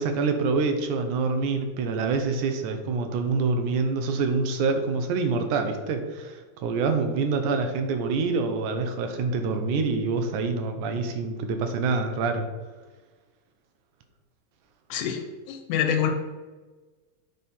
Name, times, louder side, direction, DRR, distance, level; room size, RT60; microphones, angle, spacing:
voice 1, 0.0-12.5, right 4 dB, 85° right, 6 dB, 2.3 m, -26 dB
voice 2, 14.9-16.1, left 8 dB, 85° left, 6 dB, 2.3 m, -26 dB
8.1 x 4.4 x 5.4 m, 1.3 s
omnidirectional pair, 3.4 m